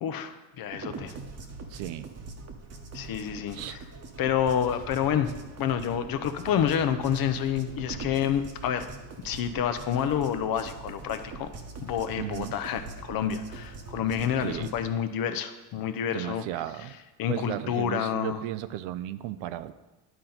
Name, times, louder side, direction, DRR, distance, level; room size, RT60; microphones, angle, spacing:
voice 1, 0.0-1.1 2.9-3.8 4.2-5.3 5.6-8.9 9.2-11.5 11.8-16.4 17.2-18.4, left 9 dB, 50° left, 9 dB, 0.7 m, -28 dB
sound 1, 0.7-14.8, right 4 dB, 35° right, 1.0 m, -42 dB
voice 2, 1.7-2.1 3.5-3.8 12.2-12.5 14.4-14.7 16.1-16.9 17.3-19.7, right 13 dB, 70° right, 14 dB, 0.6 m, -35 dB
11.0 x 4.3 x 3.9 m, 1.1 s
supercardioid pair, 105°, 45 cm